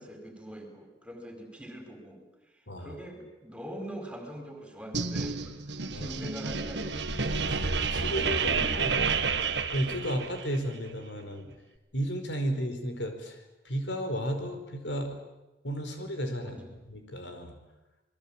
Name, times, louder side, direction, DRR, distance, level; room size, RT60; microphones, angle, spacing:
voice 1, 0.0-2.2 2.8-5.5 5.9-7.3 8.0-9.6 16.4-16.7, equal, 5° right, 5 dB, 4.8 m, -43 dB
voice 2, 2.7-3.0 5.9-6.1 7.5-9.0 9.7-11.5 11.9-15.2 15.6-16.6 16.9-17.6, equal, 85° left, 6 dB, 5.0 m, -33 dB
sound 1, 4.9-10.6, right 4 dB, 75° right, 1.8 m, -30 dB
28.0 x 21.5 x 8.9 m, 1.0 s
head